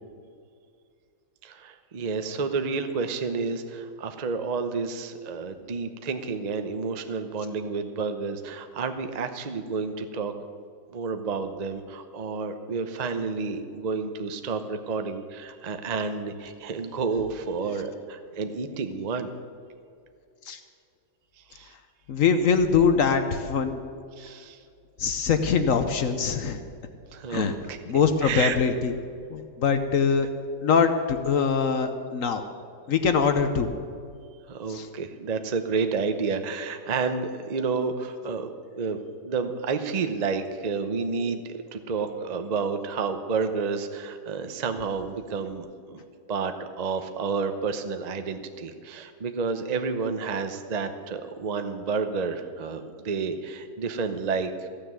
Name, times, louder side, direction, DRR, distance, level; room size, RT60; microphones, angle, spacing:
voice 1, 1.4-10.3 10.9-19.3 21.5-21.7 24.2-24.6 27.1-27.8 28.2-28.6 34.5-38.5 38.8-39.0 39.2-46.0 46.3-54.7, right 5 dB, 45° right, 8 dB, 0.5 m, -30 dB
voice 2, 22.1-23.8 25.0-26.6 27.3-27.6 27.9-28.9 29.3-30.3 30.6-32.4 32.9-33.7 34.7-34.9, left 6 dB, 55° left, 8 dB, 1.0 m, -23 dB
15.0 x 6.9 x 9.5 m, 2.4 s
omnidirectional pair, 2.0 m